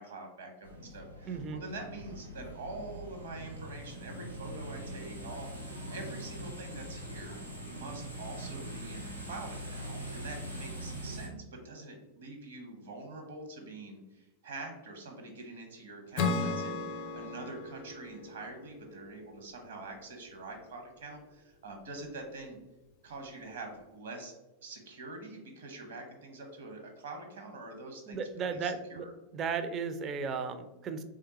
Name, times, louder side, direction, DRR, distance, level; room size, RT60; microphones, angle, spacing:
voice 1, 0.0-7.4 7.7-22.6 23.0-24.3 24.6-29.1, right 2 dB, 60° right, 3 dB, 0.9 m, -45 dB
sound 1, 0.6-11.3, right 1 dB, 90° right, 0.7 m, -42 dB
voice 2, 1.3-1.6 28.1-29.1 29.3-31.0, right 5 dB, 30° right, 10 dB, 0.4 m, -35 dB
Acoustic guitar / Strum, 16.2-19.6, left 4 dB, 45° left, 0.5 m, -35 dB
3.7 x 3.4 x 2.8 m, 1.0 s
figure-of-eight pair, 90°, 0 cm